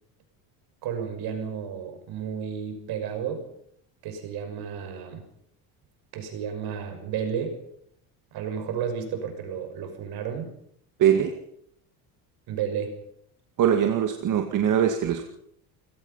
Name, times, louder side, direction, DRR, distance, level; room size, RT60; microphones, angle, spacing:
voice 1, 0.8-3.5 4.0-5.2 6.1-7.6 8.3-10.6 12.5-13.0, right 7 dB, 65° right, 7 dB, 6.2 m, -32 dB
voice 2, 11.0-11.4 13.6-15.2, right 9 dB, 50° right, 5 dB, 2.1 m, -22 dB
29.0 x 17.5 x 5.7 m, 0.70 s
cardioid pair, 125°, 40 cm